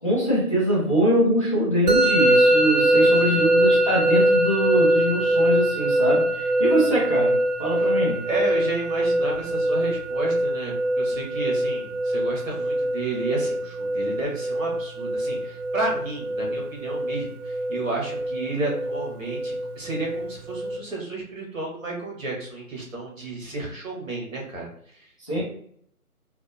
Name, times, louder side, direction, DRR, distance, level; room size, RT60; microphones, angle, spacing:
voice 1, 0.0-8.2 25.2-25.4, equal, 25° left, -8 dB, 0.6 m, -23 dB
Musical instrument, 1.9-20.8, right 1 dB, 80° right, 0.7 m, -23 dB
voice 2, 2.9-3.4 7.8-7.9 8.2-25.1 25.3-25.4, right 2 dB, 60° right, -2 dB, 1.4 m, -32 dB
3.5 x 2.4 x 2.6 m, 0.65 s
figure-of-eight pair, 150°, 45 cm